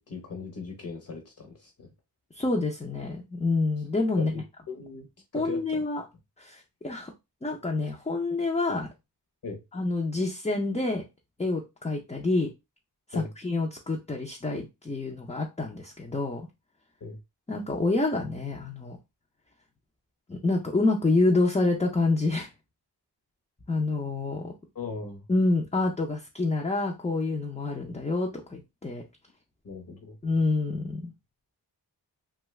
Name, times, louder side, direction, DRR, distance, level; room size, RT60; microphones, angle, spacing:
voice 1, 0.0-1.9 4.2-5.1 5.3-5.8 9.4-9.6 13.1-13.3 17.0-17.2 24.7-25.2 29.6-30.2, left 4 dB, 45° left, 0.8 m, -39 dB
voice 2, 2.3-4.3 5.3-6.0 6.4-7.1 7.4-8.9 9.7-11.0 11.4-12.5 13.1-16.5 17.5-19.0 20.3-22.5 23.7-24.5 25.3-29.0 30.2-31.1, left 2 dB, 15° left, 0.5 m, -27 dB
2.6 x 2.3 x 3.1 m
wide cardioid pair, 85°, 44 cm